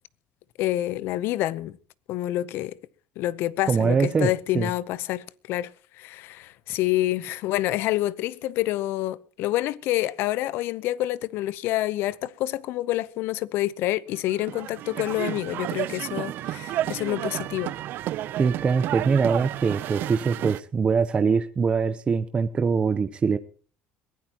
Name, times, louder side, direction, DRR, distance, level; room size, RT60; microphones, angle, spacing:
voice 1, 0.6-1.7 2.1-2.7 3.2-5.7 6.0-17.8, left 15 dB, 65° left, 0.8 m, -27 dB
voice 2, 3.7-4.3 4.5-4.7 18.4-23.4, right 5 dB, 25° right, 0.8 m, -23 dB
sound 1, 14.3-20.6, right 13 dB, 60° right, 0.6 m, -32 dB
22.0 x 16.0 x 3.0 m
cardioid pair, 120°, 4 cm